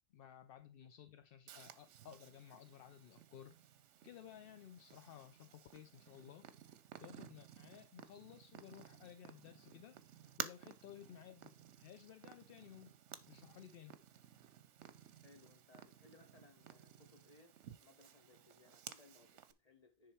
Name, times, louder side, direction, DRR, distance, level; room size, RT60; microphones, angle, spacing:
voice 1, 0.1-3.5 4.0-6.5 7.0-11.5 11.8-12.9 13.3-14.0, left 10 dB, 60° left, 0.6 m, -56 dB
Purr, 1.5-19.5, right 9 dB, 70° right, 1.0 m, -54 dB
voice 2, 15.2-20.1, left 3 dB, 35° left, 1.3 m, -65 dB
10.0 x 3.6 x 4.4 m
omnidirectional pair, 1.3 m